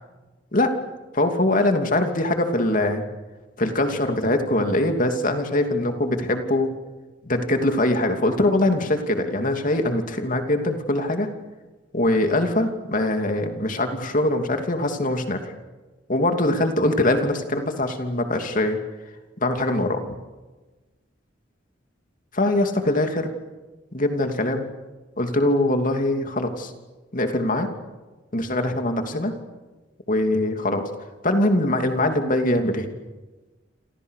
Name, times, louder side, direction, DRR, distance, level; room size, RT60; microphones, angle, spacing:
voice 1, 1.1-3.0 3.6-6.7 7.2-11.3 11.9-15.5 16.1-18.8 19.4-20.0 22.3-23.3 23.9-24.6 25.2-26.7 27.1-27.7 28.3-29.3 30.1-30.9 31.2-32.9, left 1 dB, 45° left, 5 dB, 2.9 m, -22 dB
28.5 x 27.5 x 6.7 m, 1.2 s
head